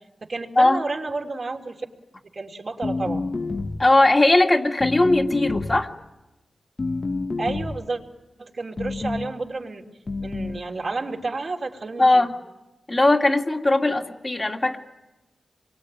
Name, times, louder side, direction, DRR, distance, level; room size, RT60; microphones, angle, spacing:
voice 1, 0.2-1.9 2.3-3.2 7.4-8.0 8.4-9.9 10.2-12.3, right 3 dB, 55° right, 1 dB, 3.3 m, -31 dB
sound 1, 2.8-4.0 4.8-5.9 6.8-7.9 8.8-9.3 10.1-10.6, left 3 dB, 45° left, 1.3 m, -28 dB
voice 2, 3.8-5.9 12.0-12.3 12.9-14.8, left 2 dB, 25° left, 2 dB, 2.2 m, -19 dB
27.5 x 23.0 x 9.1 m, 1.0 s
wide cardioid pair, 85°, 0 cm